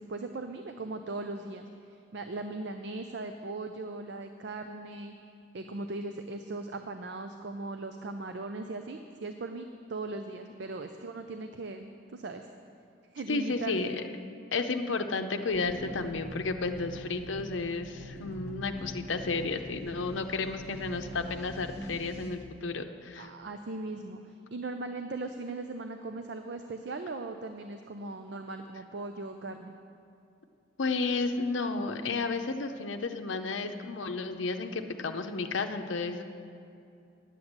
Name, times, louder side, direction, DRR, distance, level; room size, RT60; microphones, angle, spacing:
voice 1, 0.0-5.1 5.5-12.5 13.1-13.9 23.2-29.7, right 2 dB, 60° right, 7 dB, 0.5 m, -39 dB
voice 2, 13.3-13.9 14.5-23.3 30.8-36.2, left 3 dB, 75° left, 6 dB, 0.6 m, -32 dB
sound 1, 15.5-22.3, equal, 30° right, 2.3 m, -44 dB
10.0 x 7.3 x 7.9 m, 2.6 s
head